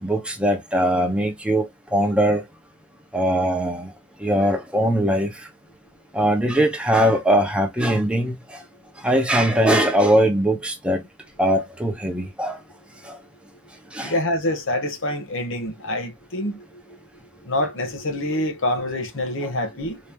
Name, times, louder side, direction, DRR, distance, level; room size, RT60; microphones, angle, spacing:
voice 1, 0.0-2.4 3.1-3.9 4.2-5.5 6.1-8.6 9.0-11.0 11.4-12.6 13.0-13.2 13.9-14.1, right 1 dB, 5° right, 1.0 m, -21 dB
voice 2, 14.0-16.6 17.4-20.0, left 1 dB, 60° left, 1.3 m, -26 dB
4.5 x 2.9 x 3.5 m
head